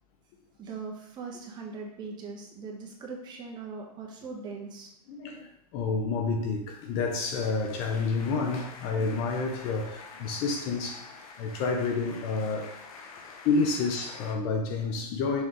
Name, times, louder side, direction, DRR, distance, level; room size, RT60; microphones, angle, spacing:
voice 1, 0.6-4.9 10.3-10.4 13.2-13.3, right 4 dB, 20° right, 1.2 m, -40 dB
voice 2, 5.1-12.7 13.4-15.4, left 4 dB, 35° left, 0.7 m, -29 dB
sound 1, 6.9-14.4, left 4 dB, 60° left, 1.1 m, -47 dB
6.5 x 3.4 x 4.6 m
hypercardioid pair, 150°, 20 cm